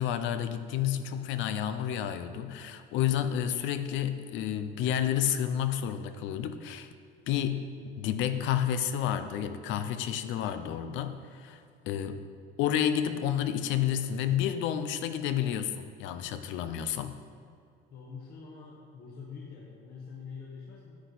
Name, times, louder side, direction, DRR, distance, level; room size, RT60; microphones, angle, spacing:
voice 1, 0.0-6.9 7.3-7.6 8.0-12.2 12.6-17.2, left 10 dB, 70° left, 10 dB, 0.7 m, -30 dB
voice 2, 17.9-21.0, left 5 dB, 50° left, -4 dB, 1.4 m, -45 dB
10.0 x 8.3 x 4.1 m, 2.3 s
cardioid pair, 135°, 20 cm